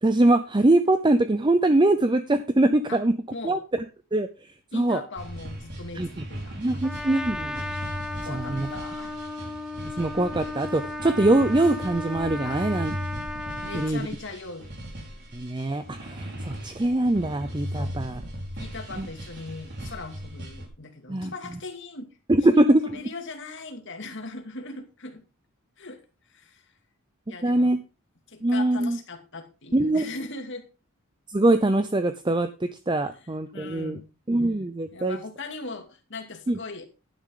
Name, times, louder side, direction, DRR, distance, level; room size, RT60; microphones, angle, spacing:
voice 1, 0.0-3.1 3.4-3.6 4.1-4.3 4.7-5.0 5.9-6.1 6.6-7.7 8.3-8.7 10.0-13.0 13.7-14.1 15.3-18.2 21.1-21.3 22.3-22.8 27.4-27.8 28.4-29.0 29.7-30.0 31.3-34.0 34.3-35.2 36.5-36.6, right 2 dB, 20° right, 10 dB, 0.7 m, -22 dB
voice 2, 4.7-7.2 8.2-9.1 12.4-12.6 13.6-14.7 17.7-17.9 18.5-22.1 22.5-25.2 25.8-26.0 26.3-26.6 27.3-27.7 28.3-30.6 33.2-34.1 34.9-36.8, left 3 dB, 60° left, 5 dB, 2.4 m, -39 dB
sound 1, 5.2-20.7, equal, 50° right, 4.5 m, -38 dB
Trumpet, 6.8-13.9, left 1 dB, 5° right, 1.2 m, -35 dB
11.5 x 10.0 x 3.9 m, 0.31 s
head